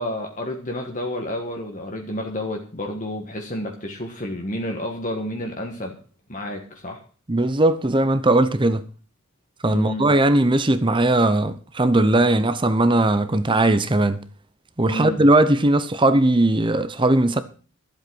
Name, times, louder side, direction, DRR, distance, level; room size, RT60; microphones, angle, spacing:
voice 1, 0.0-6.0 6.3-7.0 9.7-10.1 14.9-15.2, left 1 dB, 35° left, 1.5 m, -30 dB
voice 2, 7.3-8.9 9.6-14.2 14.8-17.4, right 2 dB, 25° right, 0.7 m, -18 dB
12.0 x 8.0 x 6.3 m
head